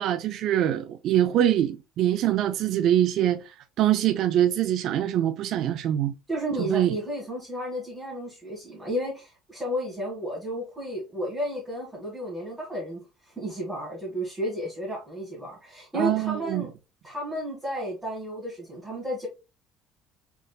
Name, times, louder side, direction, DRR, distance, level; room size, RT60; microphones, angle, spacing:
voice 1, 0.0-6.1 6.7-6.9 16.0-16.6, right 11 dB, 65° right, 0.4 m, -24 dB
voice 2, 6.3-16.7 17.0-19.3, equal, 10° right, 1.8 m, -32 dB
3.8 x 3.6 x 2.3 m
cardioid pair, 105°, 0 cm